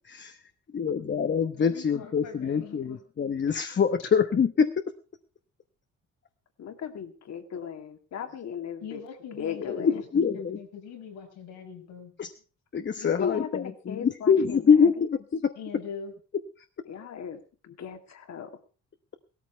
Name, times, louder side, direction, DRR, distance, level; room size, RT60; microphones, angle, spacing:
voice 1, 0.0-0.4 0.7-4.8 9.7-10.6 12.2-12.3 12.7-15.5, left 6 dB, 40° left, 8 dB, 1.0 m, -25 dB
voice 2, 1.5-3.0 8.8-10.0 10.3-12.1 15.6-16.1, left 6 dB, 90° left, 3 dB, 5.4 m, -42 dB
voice 3, 6.6-9.0 9.4-10.0 13.0-14.9 16.9-18.6, left 8 dB, 60° left, 7 dB, 2.3 m, -37 dB
16.5 x 13.5 x 4.6 m, 0.37 s
cardioid pair, 90°, 30 cm